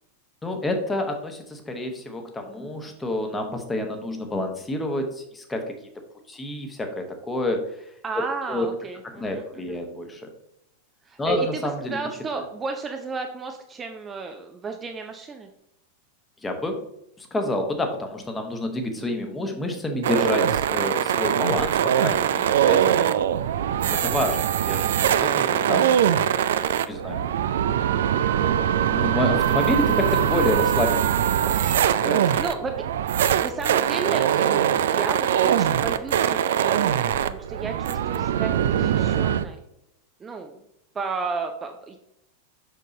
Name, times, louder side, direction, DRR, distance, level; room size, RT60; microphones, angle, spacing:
voice 1, 0.4-5.7 6.3-7.9 8.5-8.7 9.0-10.3 11.2-12.0 16.4-16.8 17.2-23.3 23.9-24.4 24.7-26.0 26.9-27.3 28.9-31.1 31.4-32.3, left 1 dB, 10° left, 4 dB, 1.1 m, -28 dB
voice 2, 8.0-9.8 11.1-15.5 32.0-32.7 33.4-39.6 40.2-40.6 40.9-42.0, right 4 dB, 20° right, 4 dB, 0.6 m, -33 dB
sound 1, 20.0-39.4, right 9 dB, 60° right, 0.3 m, -22 dB
6.6 x 6.0 x 2.8 m, 0.82 s
figure-of-eight pair, 90°, 0 cm